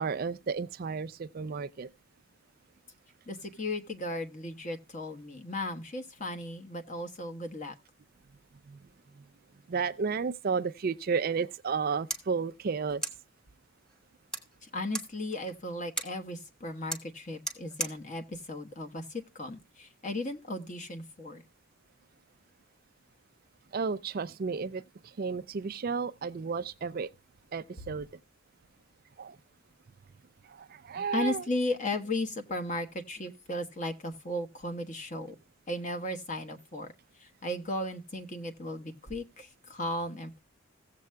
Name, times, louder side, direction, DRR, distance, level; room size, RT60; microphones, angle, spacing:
voice 1, 0.0-1.9 9.7-13.0 23.7-24.8 25.2-27.1 27.5-28.1 29.2-29.4 30.6-31.4, right 5 dB, 40° right, 0.4 m, -32 dB
voice 2, 3.3-7.7 14.6-21.4 27.8-28.0 31.1-35.3 35.7-36.9 37.2-40.4, left 1 dB, 35° left, 1.2 m, -36 dB
sound 1, 12.0-19.7, right 3 dB, 5° left, 1.3 m, -42 dB
17.0 x 7.5 x 2.2 m
head